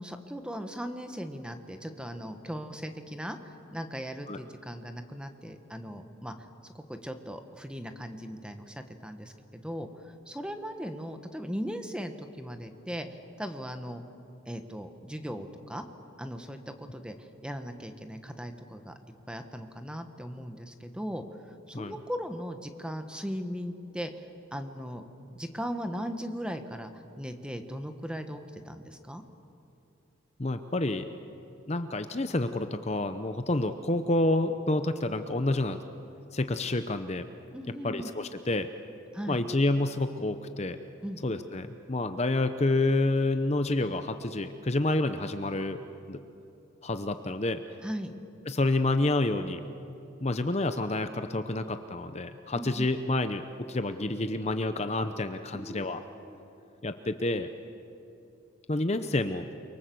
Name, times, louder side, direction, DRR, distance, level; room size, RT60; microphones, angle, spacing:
voice 1, 0.0-6.3 6.7-13.1 13.4-14.0 14.5-15.8 16.2-18.9 19.3-21.2 21.7-24.3 24.5-25.0 25.3-26.9 27.2-29.2 37.5-38.1 39.1-39.4 41.0-41.3 47.8-48.1 52.5-52.9 55.5-56.4, equal, 5° right, 7 dB, 1.4 m, -38 dB
voice 2, 30.4-31.1 31.7-35.8 36.3-37.3 37.8-38.7 39.3-40.8 41.2-45.8 46.1-46.2 46.8-47.6 48.5-49.6 50.2-56.0 56.8-57.5 58.7-59.5, left 2 dB, 30° left, 9 dB, 0.8 m, -28 dB
29.5 x 24.0 x 7.8 m, 2.8 s
head